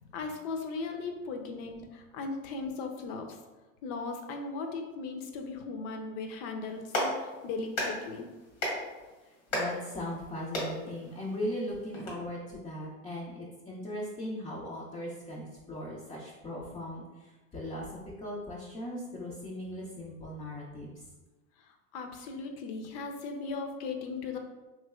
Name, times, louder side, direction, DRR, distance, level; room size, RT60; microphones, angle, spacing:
voice 1, 0.1-3.4 3.8-8.3 21.6-24.4, left 4 dB, 60° left, 5 dB, 0.6 m, -37 dB
Clapping, 6.6-12.1, left 1 dB, 85° left, 1.3 m, -36 dB
voice 2, 9.2-21.0, left 1 dB, 15° left, -5 dB, 0.3 m, -39 dB
3.1 x 2.8 x 2.3 m, 1.2 s
hypercardioid pair, 100°, 41 cm